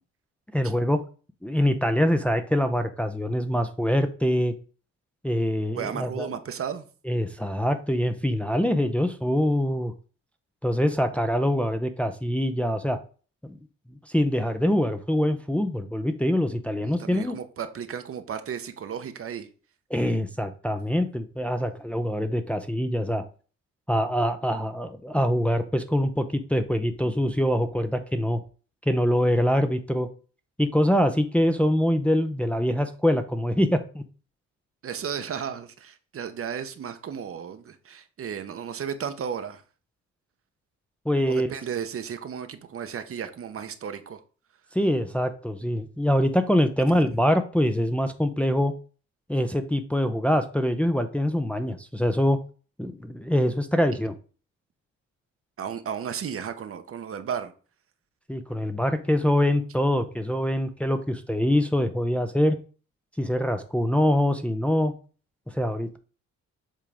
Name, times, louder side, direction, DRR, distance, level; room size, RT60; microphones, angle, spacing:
voice 1, 0.5-1.0 1.4-4.5 5.2-6.3 7.1-9.9 10.6-13.0 13.4-13.6 14.1-17.3 19.9-23.2 23.9-28.4 28.9-30.1 30.6-34.0 41.1-41.5 44.7-48.7 49.3-52.4 52.8-54.1 58.3-62.6 63.2-64.9 65.5-66.0, equal, 5° left, 0.6 m, -24 dB
voice 2, 5.7-6.9 16.8-19.5 34.8-39.6 41.3-44.2 46.9-47.0 55.6-57.5, right 7 dB, 50° right, 0.8 m, -34 dB
7.5 x 3.7 x 3.5 m
cardioid pair, 90°, 30 cm